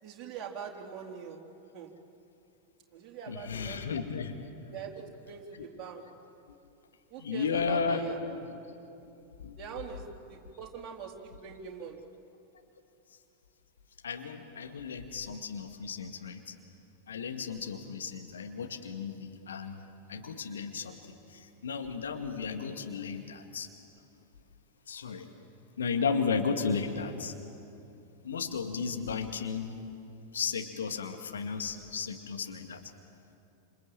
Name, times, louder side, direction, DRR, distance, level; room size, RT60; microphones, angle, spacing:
voice 1, 0.0-1.4 1.7-1.9 2.9-3.9 4.7-6.0 7.1-8.4 9.6-12.0, right 7 dB, 35° right, 0 dB, 3.6 m, -43 dB
voice 2, 3.3-4.4 5.5-5.7 7.2-8.5 9.4-9.6 14.0-16.5 17.1-23.7 24.9-25.3 25.8-27.3 28.2-29.8 30.3-32.8, left 5 dB, 65° left, 4 dB, 2.2 m, -34 dB
27.5 x 27.5 x 7.8 m, 2.8 s
figure-of-eight pair, 90°, 0 cm